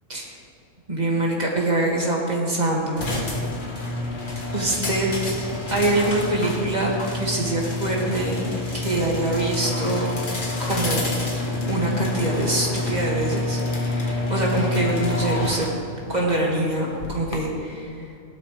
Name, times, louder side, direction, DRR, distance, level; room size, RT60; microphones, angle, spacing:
voice 1, 0.9-3.4 4.2-5.1 5.7-6.9 7.1-8.3 8.7-10.1 10.6-11.0 11.7-15.7 16.1-18.1, right 2 dB, 35° right, -3 dB, 2.5 m, -24 dB
sound 1, 3.0-17.4, left 2 dB, 40° left, 1.6 m, -28 dB
17.5 x 12.5 x 3.5 m, 2.5 s
omnidirectional pair, 1.3 m